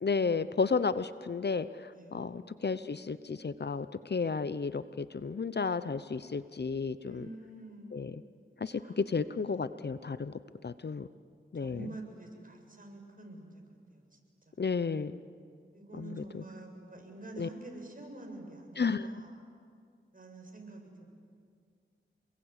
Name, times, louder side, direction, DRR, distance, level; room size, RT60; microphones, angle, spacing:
voice 1, 0.0-7.3 7.9-8.2 8.6-10.3 10.6-11.1 11.5-11.9 14.6-15.2 16.0-16.4 17.4-17.5 18.8-19.1, left 5 dB, 55° left, 13 dB, 0.8 m, -32 dB
voice 2, 1.9-2.3 7.0-8.2 8.7-9.0 11.6-14.2 14.5-14.6 15.7-19.3 20.1-21.0, right 2 dB, 40° right, 2 dB, 7.2 m, -47 dB
28.5 x 22.0 x 8.3 m, 2.2 s
cardioid pair, 55°, 21 cm